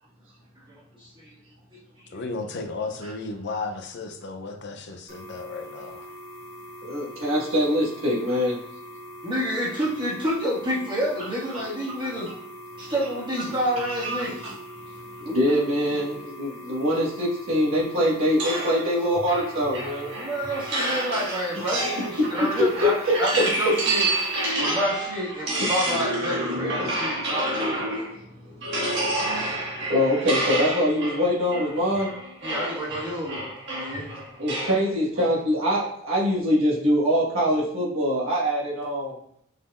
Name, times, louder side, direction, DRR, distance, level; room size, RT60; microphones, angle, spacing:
voice 1, 1.0-1.3 1.7-2.2 9.2-12.3 12.8-14.5 15.2-15.4 20.1-24.1 24.6-27.9 32.4-33.4 33.7-34.2, equal, 25° right, -7 dB, 1.6 m, -29 dB
voice 2, 2.1-6.1, left 3 dB, 55° left, 5 dB, 0.5 m, -34 dB
sound 1, 5.1-24.5, equal, 40° right, 1.1 m, -42 dB
voice 3, 6.8-8.6 13.8-14.5 15.3-20.1 21.5-21.7 22.2-23.4 24.2-24.3 26.8-27.1 28.2-28.6 29.1-29.2 29.7-32.1 34.4-39.1, equal, 85° right, -6 dB, 1.5 m, -24 dB
sound 2, 18.4-28.2 28.6-34.8, right 1 dB, 60° right, 1.6 m, -29 dB
5.4 x 3.9 x 2.4 m, 0.70 s
head